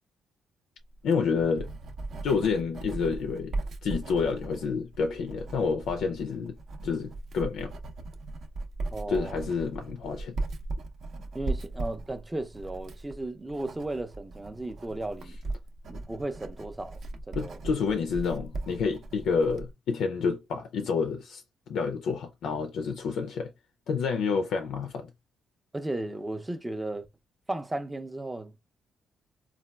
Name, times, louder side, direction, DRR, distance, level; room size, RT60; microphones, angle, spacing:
Writing, 0.9-19.7, right 2 dB, 60° right, 0.6 m, -38 dB
voice 1, 1.0-1.7 2.2-3.5 3.8-6.5 6.8-7.7 9.1-10.4 15.9-16.0 17.4-23.5 23.9-25.1, left 5 dB, 80° left, 0.4 m, -29 dB
voice 2, 8.9-9.4 11.3-15.4 15.9-17.0 17.3-17.6 25.7-27.1 27.5-28.6, right 2 dB, 15° right, 0.4 m, -35 dB
4.0 x 2.2 x 2.2 m
cardioid pair, 110°, 0 cm